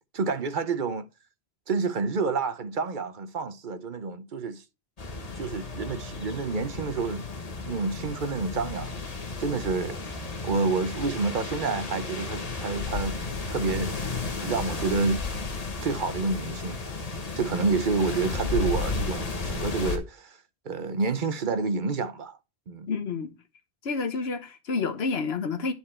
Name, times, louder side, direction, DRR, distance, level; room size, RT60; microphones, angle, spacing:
voice 1, 0.1-1.0 1.7-4.6 5.1-7.3 7.6-8.9 9.4-10.2 10.4-13.2 13.5-14.1 14.4-15.2 15.8-16.8 17.3-20.4 20.6-22.4 22.7-22.9, right 4 dB, 50° right, 0.9 m, -29 dB
sound 1, 5.0-20.0, left 4 dB, 35° left, 1.2 m, -33 dB
voice 2, 22.9-23.3 23.8-25.7, left 4 dB, 65° left, 1.3 m, -29 dB
9.8 x 4.4 x 4.2 m
omnidirectional pair, 1.1 m